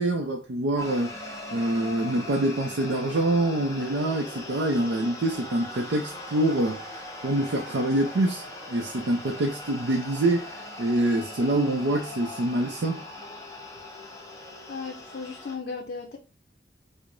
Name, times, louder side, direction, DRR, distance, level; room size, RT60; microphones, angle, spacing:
voice 1, 0.0-13.0, right 1 dB, 90° right, 0.5 m, -26 dB
sound 1, 0.8-15.6, left 2 dB, 20° left, 0.6 m, -40 dB
voice 2, 14.7-16.2, left 4 dB, 60° left, 0.5 m, -36 dB
4.6 x 2.0 x 2.5 m
head